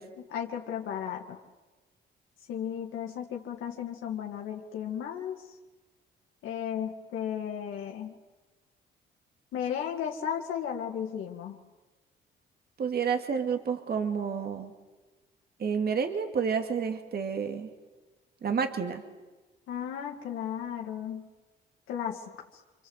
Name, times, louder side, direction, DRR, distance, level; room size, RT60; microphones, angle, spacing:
voice 1, 0.2-1.4 2.5-5.4 6.4-8.1 9.5-11.6 19.7-21.3 21.9-22.2, left 9 dB, 85° left, 0 dB, 2.2 m, -34 dB
voice 2, 12.8-14.7 15.6-17.7 18.4-19.0, right 6 dB, 50° right, 6 dB, 2.4 m, -29 dB
28.0 x 25.0 x 8.1 m, 1.2 s
cardioid pair, 90°, 20 cm